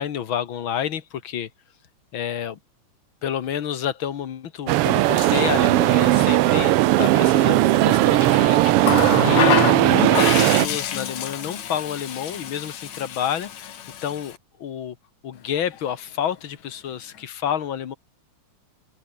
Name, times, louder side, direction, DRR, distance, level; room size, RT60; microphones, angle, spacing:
voice 1, 0.0-1.5 2.1-2.6 3.2-13.7 14.0-15.0 15.2-17.9, left 9 dB, 50° left, 1.9 m, -29 dB
sound 1, 4.7-10.7, right 16 dB, 90° right, 1.2 m, -17 dB
Water tap faucet, 8.8-14.4 15.6-15.8, left 9 dB, 70° left, 3.1 m, -27 dB
open air
omnidirectional pair, 3.4 m